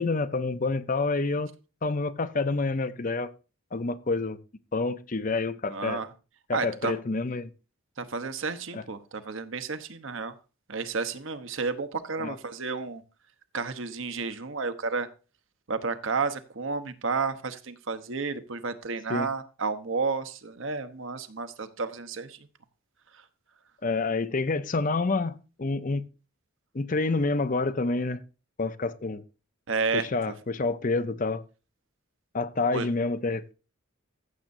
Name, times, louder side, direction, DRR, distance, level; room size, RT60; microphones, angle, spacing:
voice 1, 0.0-1.5 1.8-3.3 3.7-4.4 4.7-6.0 6.5-7.5 8.7-8.8 12.2-12.3 19.1-19.3 23.8-26.0 26.7-28.2 28.6-29.2 29.9-31.4 32.3-33.5, left 3 dB, 40° left, 0.6 m, -28 dB
voice 2, 5.7-6.1 6.5-6.9 8.0-10.3 10.7-13.0 13.5-15.1 15.7-22.4 29.7-30.1 32.7-32.9, right 4 dB, 65° right, 1.0 m, -31 dB
15.0 x 7.5 x 2.6 m
head